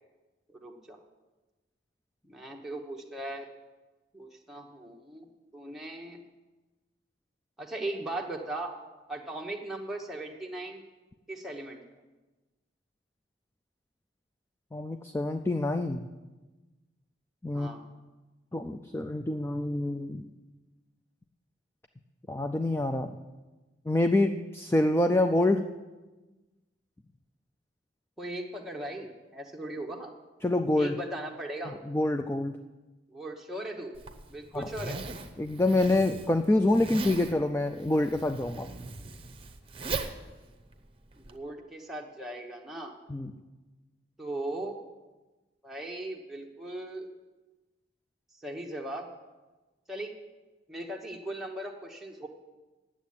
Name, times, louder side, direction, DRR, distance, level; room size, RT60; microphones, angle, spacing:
voice 1, 0.5-1.0 2.3-3.5 4.1-6.2 7.6-8.7 9.1-10.8 11.3-11.8 17.5-17.8 28.2-30.1 30.7-31.7 33.1-33.9 34.3-35.0 41.3-42.9 44.2-44.8 45.6-47.1 48.4-49.1 49.9-50.1 50.7-52.3, right 1 dB, ahead, -1 dB, 1.0 m, -38 dB
voice 2, 14.7-16.1 17.4-17.7 18.5-20.2 22.3-23.2 23.9-25.7 30.4-31.0 31.7-32.5 34.5-34.7 35.4-38.7 43.1-43.3, left 1 dB, 15° left, 6 dB, 0.4 m, -26 dB
Zipper (clothing), 33.9-41.4, right 3 dB, 30° right, 0.8 m, -39 dB
9.9 x 7.4 x 8.7 m, 1.2 s
head